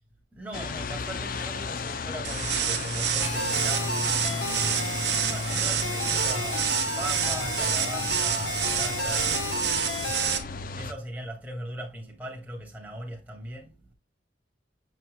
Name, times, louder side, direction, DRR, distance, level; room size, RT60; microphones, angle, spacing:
voice 1, 0.3-6.7 7.0-13.9, right 1 dB, 10° right, 2.1 m, -39 dB
sound 1, 0.5-10.9, left 4 dB, 45° left, 0.5 m, -34 dB
sound 2, 2.2-10.4, right 9 dB, 60° right, 1.3 m, -29 dB
sound 3, 3.2-10.4, left 2 dB, 85° left, 1.1 m, -33 dB
7.6 x 5.8 x 2.2 m
head